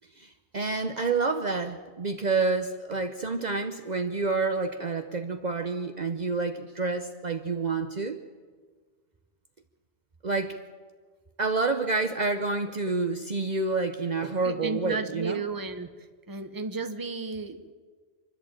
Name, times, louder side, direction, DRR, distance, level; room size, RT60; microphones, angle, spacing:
voice 1, 0.2-8.2 10.2-10.6 11.4-15.4, right 3 dB, 45° right, 7 dB, 0.9 m, -28 dB
voice 2, 14.4-15.9 16.3-17.7, right 3 dB, 20° right, 9 dB, 1.0 m, -33 dB
26.0 x 11.5 x 8.8 m, 1.5 s
omnidirectional pair, 1.1 m